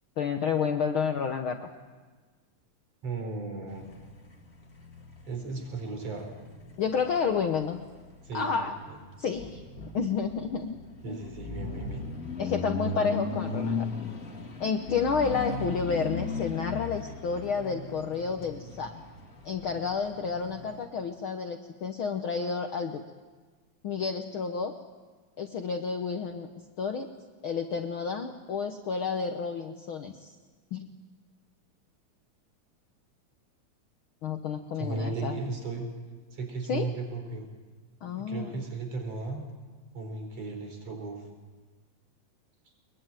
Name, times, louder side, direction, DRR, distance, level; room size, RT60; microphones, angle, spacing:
voice 1, 0.2-1.7 6.8-7.8 8.3-8.7 9.2-9.6 9.9-10.8 11.1-11.2 12.4-13.9 14.6-18.9 19.4-23.0 23.8-24.7 25.4-26.5 26.8-27.1 27.4-30.3 30.7-30.9 34.2-35.4 36.7-36.9 38.0-38.6, left 5 dB, 65° left, 5 dB, 1.3 m, -30 dB
voice 2, 3.0-3.9 5.3-6.3 8.2-8.7 11.0-12.1 34.8-35.9 36.3-37.5 38.1-39.4 39.9-41.2, right 3 dB, 50° right, 4 dB, 5.4 m, -35 dB
sound 1, 3.7-20.8, left 3 dB, 30° left, 2.3 m, -38 dB
23.0 x 22.0 x 9.1 m, 1.4 s
omnidirectional pair, 3.6 m